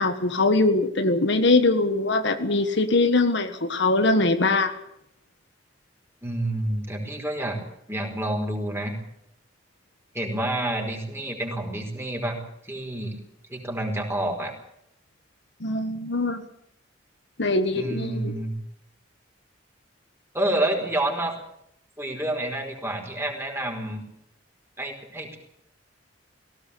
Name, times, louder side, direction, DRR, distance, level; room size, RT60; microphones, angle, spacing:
voice 1, 0.0-4.7 15.6-16.4 17.4-18.3, left 2 dB, 65° left, 9 dB, 1.6 m, -22 dB
voice 2, 6.2-7.6 7.9-8.9 10.1-12.4 12.6-13.2 13.5-14.5 17.7-18.5 20.3-21.3 22.0-24.0 24.8-25.4, right 1 dB, 15° right, 2 dB, 4.9 m, -28 dB
19.0 x 17.0 x 8.5 m, 0.76 s
head